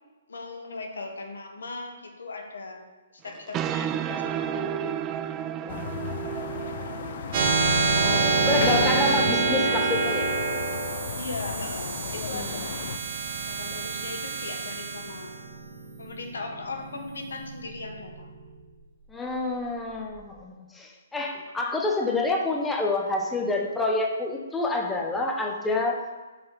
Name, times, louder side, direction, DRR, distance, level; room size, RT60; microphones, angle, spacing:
voice 1, 0.3-2.8 3.2-5.1 7.5-9.6 11.1-12.7 13.4-15.3 16.0-18.3, left 3 dB, 75° left, 3 dB, 1.6 m, -38 dB
sound 1, 3.3-10.4, right 10 dB, 25° right, 0.4 m, -34 dB
voice 2, 5.5-6.0 7.9-10.3 12.3-12.5 19.1-26.0, left 2 dB, 10° left, 0 dB, 1.1 m, -28 dB
sound 2, 5.7-13.0, left 8 dB, 55° left, 0.5 m, -35 dB
sound 3, 7.3-18.2, right 4 dB, 45° right, 1.5 m, -27 dB
6.8 x 5.4 x 6.9 m, 1.3 s
figure-of-eight pair, 130°, 0 cm